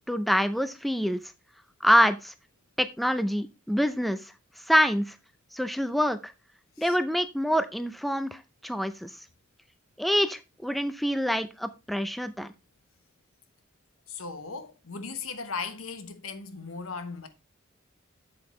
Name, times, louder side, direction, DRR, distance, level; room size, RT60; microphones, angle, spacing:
voice 1, 0.1-1.2 1.8-2.3 2.8-4.3 4.7-5.1 5.5-6.3 6.8-9.1 10.0-12.5, equal, ahead, 0.4 m, -26 dB
voice 2, 14.1-17.3, left 4 dB, 80° left, 1.2 m, -37 dB
7.9 x 7.7 x 3.1 m
head